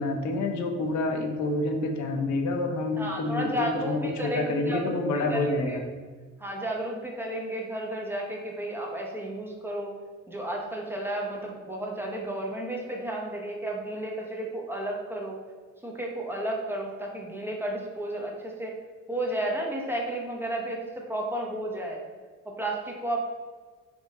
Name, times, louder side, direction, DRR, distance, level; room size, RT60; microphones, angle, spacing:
voice 1, 0.0-5.8, left 2 dB, 65° left, 3 dB, 0.7 m, -28 dB
voice 2, 3.0-5.0 5.3-5.8 6.4-9.9 10.3-15.4 15.8-18.7 19.1-22.0 22.4-23.2, right 1 dB, 5° right, -1 dB, 0.8 m, -32 dB
3.5 x 2.6 x 3.9 m, 1.5 s
cardioid pair, 90°, 30 cm